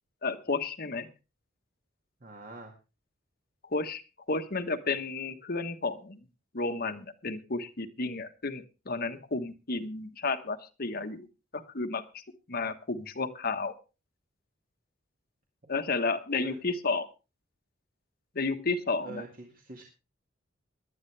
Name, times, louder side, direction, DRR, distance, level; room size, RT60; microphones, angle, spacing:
voice 1, 0.2-1.1 3.6-4.0 4.3-6.2 6.5-11.3 11.5-13.7 15.7-17.1 18.3-19.3, left 3 dB, 50° left, 7 dB, 1.3 m, -32 dB
voice 2, 2.2-2.7 15.6-15.7 16.4-16.6 19.0-19.8, right 2 dB, 45° right, 1 dB, 2.0 m, -44 dB
18.5 x 11.5 x 3.3 m, 0.30 s
head